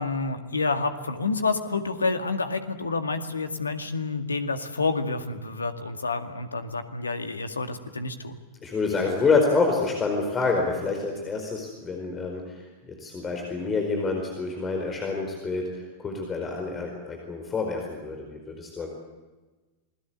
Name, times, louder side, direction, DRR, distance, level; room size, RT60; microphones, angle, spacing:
voice 1, 0.0-8.4, left 3 dB, 75° left, 8 dB, 2.0 m, -29 dB
voice 2, 8.6-18.9, left 4 dB, 20° left, 2 dB, 4.7 m, -27 dB
28.0 x 20.5 x 8.1 m, 1.2 s
figure-of-eight pair, 90°, 0 cm